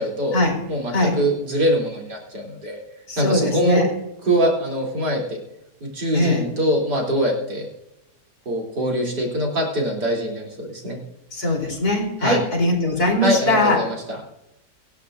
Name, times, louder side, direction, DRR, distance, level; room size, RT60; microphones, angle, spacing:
voice 1, 0.0-0.4 0.7-2.8 3.2-3.8 4.2-5.4 5.8-7.7 8.5-11.0 12.2-12.4 13.2-14.0, equal, 90° right, -2 dB, 4.2 m, -23 dB
voice 2, 3.1-3.9 6.1-6.4 11.3-13.8, left 1 dB, 65° left, 1 dB, 4.4 m, -20 dB
24.5 x 11.5 x 2.6 m, 0.91 s
omnidirectional pair, 1.7 m